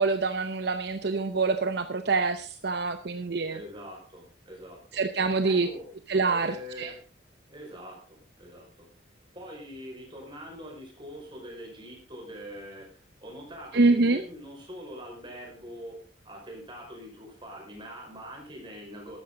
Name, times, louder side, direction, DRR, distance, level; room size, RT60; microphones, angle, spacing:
voice 1, 0.0-3.6 4.9-5.7 6.1-6.9 13.7-14.2, right 3 dB, 60° right, 9 dB, 0.8 m, -25 dB
voice 2, 3.5-5.0 5.4-5.9 6.3-7.0 7.5-8.9 9.3-16.0 16.3-19.2, equal, 25° right, 0 dB, 5.4 m, -43 dB
13.5 x 12.0 x 3.9 m, 0.38 s
head